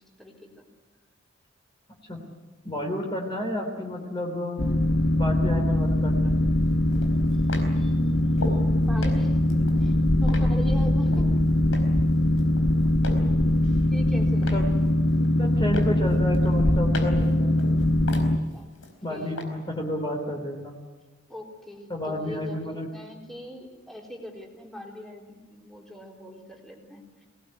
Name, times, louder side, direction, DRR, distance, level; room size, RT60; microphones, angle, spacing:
voice 1, 0.2-0.7 7.3-9.9 10.2-11.3 13.9-14.8 18.5-18.7 19.1-19.4 21.3-27.3, equal, ahead, -1 dB, 4.0 m, -41 dB
voice 2, 2.6-4.6 5.1-6.3 9.5-9.7 14.5-14.6 15.4-17.7 19.0-20.7 21.9-22.9, left 1 dB, 25° left, 2 dB, 3.4 m, -31 dB
Boat Water vehicle, 4.6-18.4, left 1 dB, 70° left, 1.6 m, -22 dB
sound 1, 5.9-6.0 6.9-8.7 9.0-11.3 11.7-12.1 12.4-13.3 13.6-14.7 15.1-15.5 15.7-17.3 17.6-18.9 19.4-19.5, left 2 dB, 90° left, 4.5 m, -38 dB
24.0 x 19.0 x 9.6 m, 1.3 s
head